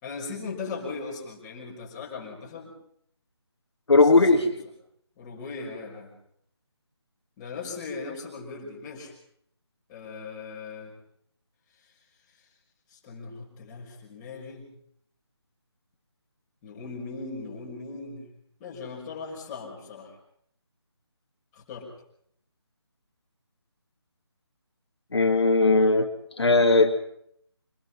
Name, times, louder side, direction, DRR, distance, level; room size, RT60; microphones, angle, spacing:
voice 1, 0.0-2.7 4.1-4.4 5.2-6.1 7.4-9.1 9.9-10.9 12.9-14.7 16.6-18.3 18.6-20.1 21.5-21.9, left 4 dB, 15° left, -4 dB, 6.2 m, -38 dB
voice 2, 3.9-4.5 25.1-26.1 26.4-26.9, left 3 dB, 70° left, 4 dB, 2.8 m, -18 dB
26.5 x 20.0 x 5.8 m, 0.70 s
figure-of-eight pair, 165°, 14 cm